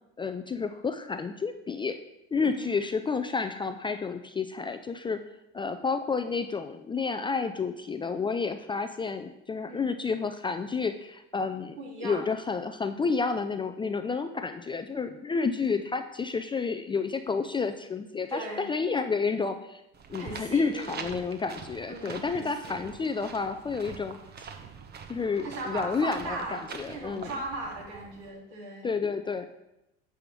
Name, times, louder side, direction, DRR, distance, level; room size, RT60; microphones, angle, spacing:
voice 1, 0.2-2.0 2.3-5.2 5.5-11.8 12.0-19.8 20.1-24.5 25.1-27.3 28.8-29.4, left 4 dB, 15° left, 7 dB, 0.4 m, -30 dB
voice 2, 11.8-12.3 15.7-15.9 18.3-18.7 20.2-21.0 21.9-22.8 25.4-28.9, right 2 dB, 65° right, 0 dB, 3.0 m, -38 dB
sound 1, 19.9-28.3, right 6 dB, 30° right, 1.0 m, -44 dB
9.6 x 3.5 x 6.9 m, 0.88 s
hypercardioid pair, 85°, 32 cm